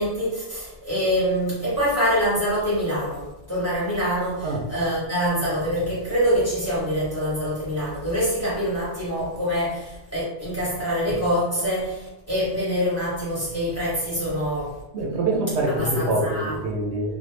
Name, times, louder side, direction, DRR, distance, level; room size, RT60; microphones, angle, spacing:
voice 1, 0.0-14.8 15.7-16.6, equal, 15° left, -9 dB, 1.1 m, -25 dB
voice 2, 14.9-17.2, right 2 dB, 70° right, -1 dB, 0.9 m, -25 dB
2.5 x 2.3 x 3.1 m, 0.95 s
omnidirectional pair, 1.2 m